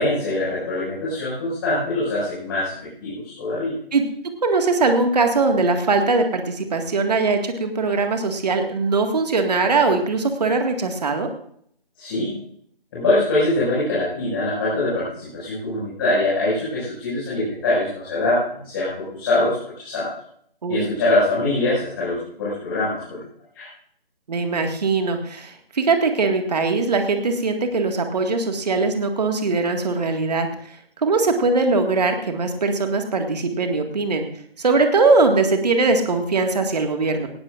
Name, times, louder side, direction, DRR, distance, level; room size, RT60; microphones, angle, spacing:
voice 1, 0.0-2.7 3.0-3.7 12.0-12.4 12.9-20.1 20.7-23.2 23.5-23.7, left 2 dB, 25° left, -9 dB, 6.0 m, -23 dB
voice 2, 3.9-11.3 20.6-20.9 24.3-34.3 34.6-37.3, right 3 dB, 45° right, 5 dB, 1.9 m, -21 dB
18.5 x 15.5 x 2.5 m, 0.65 s
figure-of-eight pair, 160°, 30 cm